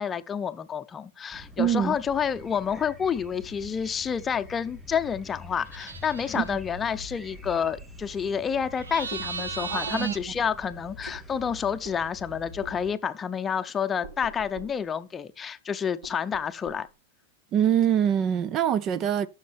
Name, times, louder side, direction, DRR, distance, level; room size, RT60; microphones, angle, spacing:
voice 1, 0.0-16.9, left 7 dB, 20° left, 0.7 m, -29 dB
sound 1, 1.3-12.9, equal, 10° right, 3.2 m, -45 dB
voice 2, 1.6-2.0 6.3-6.6 9.7-10.1 17.5-19.3, right 9 dB, 35° right, 0.5 m, -24 dB
sound 2, 5.7-6.5 8.8-10.2, right 5 dB, 90° right, 1.1 m, -36 dB
sound 3, 9.1-10.1 11.1-11.2 11.8-12.0 12.6-12.8 14.0-14.8 16.0-16.9, right 1 dB, 75° right, 5.9 m, -44 dB
13.5 x 6.4 x 3.5 m
hypercardioid pair, 110°, 0 cm